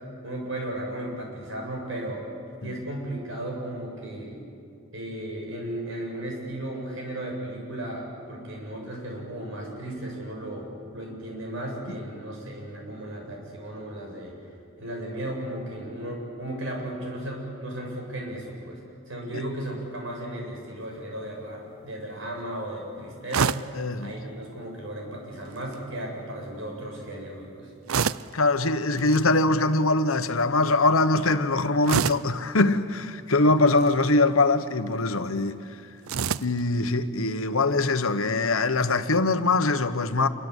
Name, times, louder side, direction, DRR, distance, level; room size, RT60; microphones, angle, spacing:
voice 1, 0.2-2.3 2.6-4.5 4.9-14.4 14.8-18.8 19.1-23.6 24.0-27.7, right 1 dB, 70° right, 7.3 m, -35 dB
sound 1, 23.3-23.8 25.5-25.8 27.9-28.4 29.0-29.2 31.8-32.4 33.7-34.1 36.1-36.6, right 6 dB, 85° right, 0.6 m, -27 dB
voice 2, 23.7-24.1 28.3-35.6 36.4-40.3, left 2 dB, 85° left, 1.3 m, -23 dB
27.5 x 23.5 x 8.2 m
head